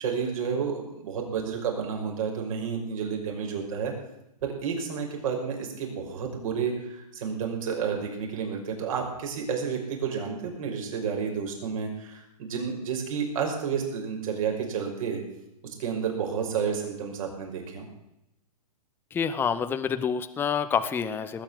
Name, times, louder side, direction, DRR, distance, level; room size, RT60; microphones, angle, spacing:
voice 1, 0.0-3.9 4.4-15.2 15.6-17.9, right 6 dB, 55° right, 1 dB, 5.6 m, -31 dB
voice 2, 19.1-21.4, left 7 dB, 10° left, 10 dB, 0.7 m, -27 dB
19.5 x 8.6 x 7.7 m, 0.88 s
hypercardioid pair, 140°, 20 cm